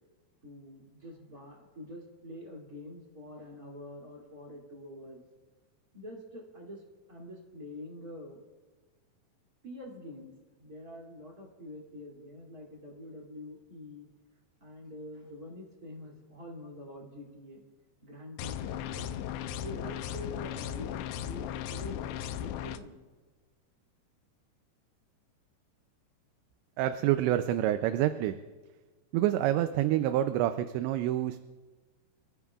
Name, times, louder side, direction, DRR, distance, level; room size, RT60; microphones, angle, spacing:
voice 1, 0.4-5.2 5.9-6.8 7.1-8.4 9.6-14.1 14.6-17.6 18.0-19.2 19.6-23.0, left 1 dB, 25° right, -3 dB, 2.5 m, -46 dB
sound 1, 18.4-22.8, left 10 dB, 85° left, 2.8 m, -36 dB
voice 2, 26.8-28.4 29.1-31.4, right 12 dB, 90° right, 8 dB, 2.9 m, -27 dB
29.0 x 14.5 x 2.4 m, 1.3 s
omnidirectional pair, 5.0 m